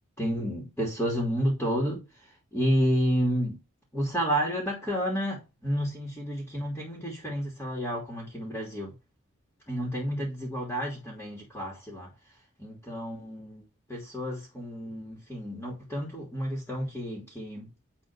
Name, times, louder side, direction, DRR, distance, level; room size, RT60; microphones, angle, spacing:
voice 1, 0.2-2.0 2.5-3.6 3.9-8.9 9.7-12.1 12.6-13.6 13.9-17.7, equal, 10° left, 3.2 m, -30 dB
10.5 x 4.2 x 6.1 m
head